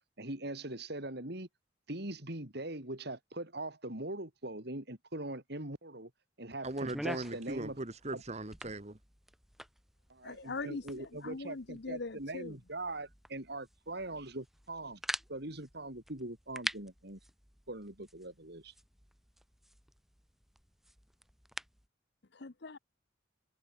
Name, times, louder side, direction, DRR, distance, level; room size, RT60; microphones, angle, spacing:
voice 1, 0.2-1.5 1.9-6.1 6.4-7.8 8.1-8.2 10.1-15.0 15.3-17.2 17.7-18.7, right 2 dB, 60° right, 4.1 m, -42 dB
sound 1, 6.6-21.9, equal, ahead, 1.2 m, -47 dB
voice 2, 6.6-9.0, right 2 dB, 35° right, 1.9 m, -39 dB
voice 3, 10.2-12.5 22.3-22.8, left 3 dB, 60° left, 0.9 m, -42 dB
head